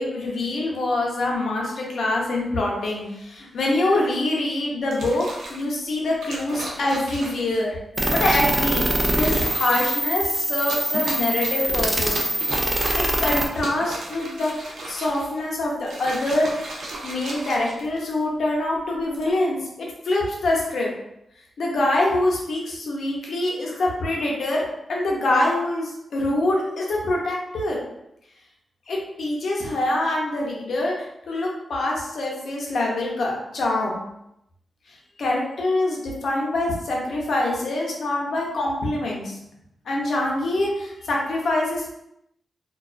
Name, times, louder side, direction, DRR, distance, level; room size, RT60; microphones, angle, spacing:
voice 1, 0.0-7.7 8.1-12.3 13.2-14.5 14.9-16.5 17.0-20.9 21.6-27.8 28.9-34.0 35.2-39.4 39.9-42.0, left 2 dB, 70° left, -2 dB, 0.6 m, -25 dB
sound 1, 4.8-5.6 6.2-7.6 8.2-8.6 8.9-10.0 10.6-11.7 12.0-13.1 13.5-15.4 15.8-18.2 18.9-19.3, right 2 dB, 90° right, 0.4 m, -35 dB
sound 2, 8.0-13.5, right 1 dB, 20° right, 0.3 m, -23 dB
2.3 x 2.3 x 2.4 m, 0.82 s
wide cardioid pair, 100°, 0 cm